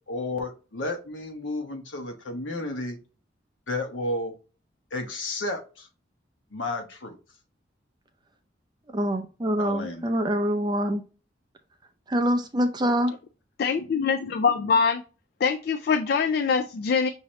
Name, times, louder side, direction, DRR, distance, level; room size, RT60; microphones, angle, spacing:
voice 1, 0.1-3.0 3.7-4.3 4.9-5.9 6.5-7.2 9.6-10.1, left 2 dB, 90° left, 1.0 m, -32 dB
voice 2, 8.9-11.0 12.1-13.1, equal, 25° right, 0.6 m, -25 dB
voice 3, 13.6-15.0 15.4-17.1, left 5 dB, 55° left, 0.3 m, -23 dB
5.8 x 2.7 x 3.1 m
head